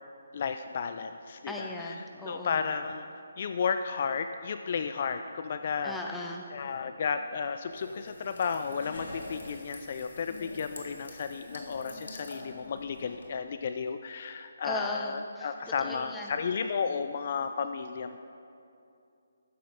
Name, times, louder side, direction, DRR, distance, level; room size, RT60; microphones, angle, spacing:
voice 1, 0.3-1.9 2.3-3.0 3.4-6.3 6.5-18.2, left 6 dB, 45° left, 9 dB, 0.4 m, -33 dB
voice 2, 1.5-2.6 5.8-6.5 14.6-15.5 15.8-16.3, left 1 dB, 5° left, 0 dB, 0.8 m, -37 dB
sound 1, 7.6-13.3, left 2 dB, 75° left, 1.9 m, -45 dB
12.0 x 9.3 x 3.6 m, 2.6 s
figure-of-eight pair, 155°, 0 cm